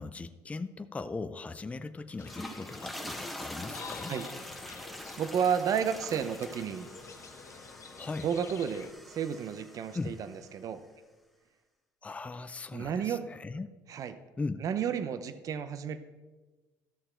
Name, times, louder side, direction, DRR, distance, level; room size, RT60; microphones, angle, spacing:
voice 1, 0.0-4.1 8.0-8.3 9.9-10.1 12.0-13.7 14.4-14.6, left 3 dB, 15° left, 10 dB, 0.5 m, -38 dB
sound 1, 2.1-10.4, left 1 dB, ahead, 1.2 m, -44 dB
sound 2, 2.2-8.9, left 6 dB, 40° left, 0.9 m, -48 dB
voice 2, 4.7-6.9 8.2-10.8 12.7-13.3 13.9-14.2 14.6-16.0, right 7 dB, 50° right, 12 dB, 0.7 m, -32 dB
13.0 x 6.7 x 4.4 m, 1.2 s
supercardioid pair, 95°, 8 cm